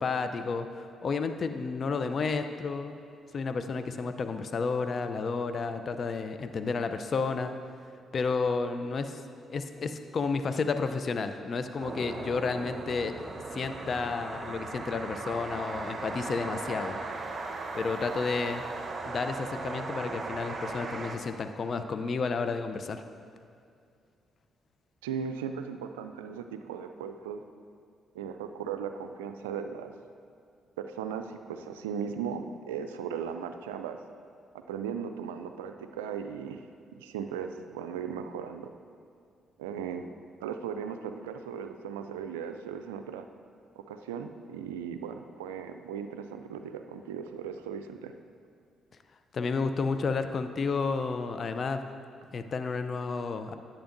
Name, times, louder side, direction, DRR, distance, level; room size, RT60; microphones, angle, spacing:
voice 1, 0.0-2.9 3.3-7.6 8.1-9.2 9.5-13.1 13.5-17.0 17.7-18.6 19.0-23.0 49.3-51.8 52.3-53.6, left 4 dB, 50° left, 9 dB, 0.5 m, -31 dB
sound 1, 11.8-21.2, right 3 dB, 45° right, 0.9 m, -38 dB
voice 2, 25.0-27.4 28.1-29.9 30.8-34.0 34.5-36.6 37.0-38.7 39.6-40.0 40.4-43.3 43.8-48.1, right 7 dB, 90° right, 7 dB, 0.3 m, -37 dB
10.0 x 8.8 x 2.6 m, 2.3 s
hypercardioid pair, 45°, 0 cm